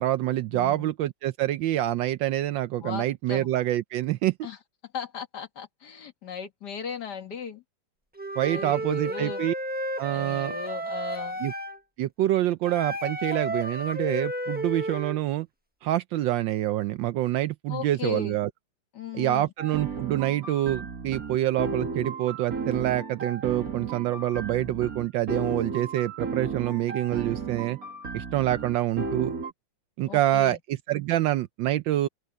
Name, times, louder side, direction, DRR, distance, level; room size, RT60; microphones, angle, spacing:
voice 1, 0.0-4.3 8.4-9.5 10.0-10.5 11.4-11.5 12.0-15.5 15.8-18.5 19.1-27.8 28.1-29.3 30.0-32.1, right 14 dB, 80° right, 1.3 m, -26 dB
voice 2, 0.5-0.9 2.8-3.5 4.4-4.6 4.9-7.6 8.5-9.5 10.1-11.4 17.7-18.4 18.9-19.5 30.1-30.6, left 6 dB, 60° left, 2.1 m, -37 dB
Wind instrument woodwind instrument, 8.1-11.8 12.6-15.2, right 1 dB, 5° right, 1.0 m, -32 dB
sound 1, 19.6-29.5, right 4 dB, 50° right, 2.4 m, -34 dB
open air
omnidirectional pair, 2.1 m